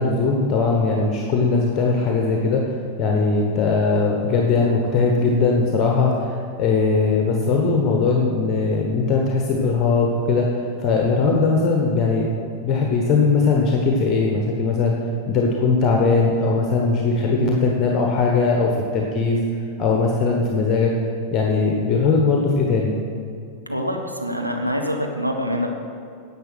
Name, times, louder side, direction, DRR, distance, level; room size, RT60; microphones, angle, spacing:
voice 1, 0.0-12.3 12.6-14.9 15.3-19.4 19.8-20.9 21.3-22.9, left 4 dB, 30° left, 0 dB, 1.2 m, -20 dB
voice 2, 23.7-25.7, equal, 90° right, 2 dB, 1.0 m, -25 dB
10.5 x 7.3 x 6.2 m, 2.4 s
figure-of-eight pair, 90°, 0 cm